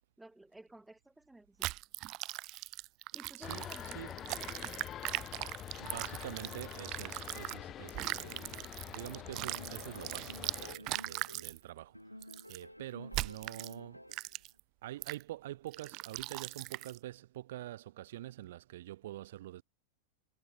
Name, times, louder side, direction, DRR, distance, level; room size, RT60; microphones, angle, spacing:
voice 1, 0.2-1.0 1.3-1.7 3.1-4.8 10.8-10.9, right 2 dB, 5° right, 6.1 m, -55 dB
sound 1, 1.6-7.6 7.9-11.6 12.2-12.6 13.1-13.7 14.1-14.6 15.0-15.2 15.7-17.0, right 19 dB, 40° right, 4.4 m, -40 dB
voice 2, 3.1-4.2 5.8-14.1 14.8-19.6, right 14 dB, 55° right, 3.4 m, -46 dB
sound 2, 3.4-10.8, left 11 dB, 30° left, 2.9 m, -46 dB
sound 3, 9.3-11.6 11.9-14.4, equal, 90° left, 3.9 m, -51 dB
figure-of-eight pair, 90°, 0 cm